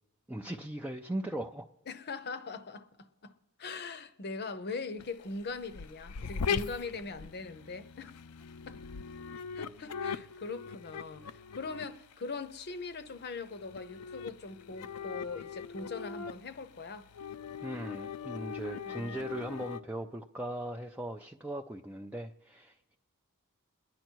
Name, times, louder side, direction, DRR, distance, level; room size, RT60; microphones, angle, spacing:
voice 1, 0.3-1.7 17.6-23.0, right 1 dB, 5° right, 0.4 m, -39 dB
voice 2, 1.9-2.9 3.2-3.3 3.6-8.2 8.7-8.8 9.5-17.1 18.8-19.4, left 4 dB, 50° left, 0.7 m, -41 dB
sound 1, 5.0-19.8, left 6 dB, 90° left, 0.6 m, -41 dB
29.0 x 10.5 x 4.6 m
head